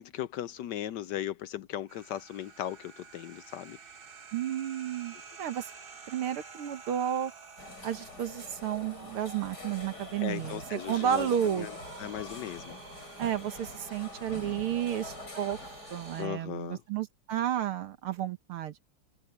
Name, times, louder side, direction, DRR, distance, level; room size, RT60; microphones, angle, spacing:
voice 1, 0.0-3.8 10.2-11.7 12.0-12.8 16.2-16.8, left 12 dB, 75° left, 1.0 m, -37 dB
sound 1, 1.9-16.2, right 5 dB, 30° right, 1.2 m, -50 dB
voice 2, 4.3-5.7 6.1-7.3 7.8-11.7 13.2-15.6 15.9-18.7, right 10 dB, 75° right, 2.0 m, -32 dB
sound 2, 7.6-16.3, left 2 dB, 45° left, 7.1 m, -45 dB
omnidirectional pair, 2.4 m